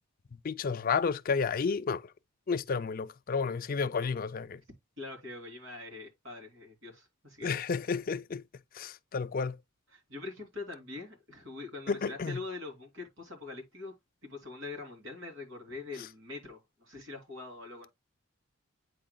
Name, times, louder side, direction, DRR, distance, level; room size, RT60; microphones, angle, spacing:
voice 1, 0.4-2.0 2.5-4.6 7.4-8.4 8.7-9.6 11.9-12.4, left 5 dB, 40° left, 0.4 m, -31 dB
voice 2, 5.0-7.6 9.9-13.9 14.2-17.9, left 3 dB, 65° right, 3.1 m, -43 dB
8.5 x 5.0 x 2.2 m
head